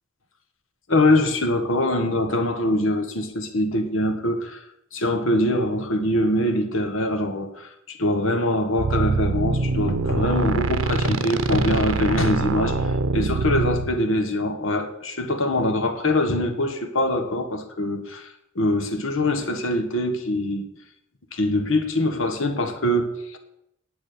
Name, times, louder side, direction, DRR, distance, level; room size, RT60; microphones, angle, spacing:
voice 1, 0.9-4.6 4.9-20.7 21.3-23.4, left 1 dB, 70° left, 6 dB, 1.6 m, -23 dB
sound 1, 8.8-13.9, right 3 dB, 75° right, 0.9 m, -24 dB
10.5 x 8.4 x 6.8 m, 0.79 s
head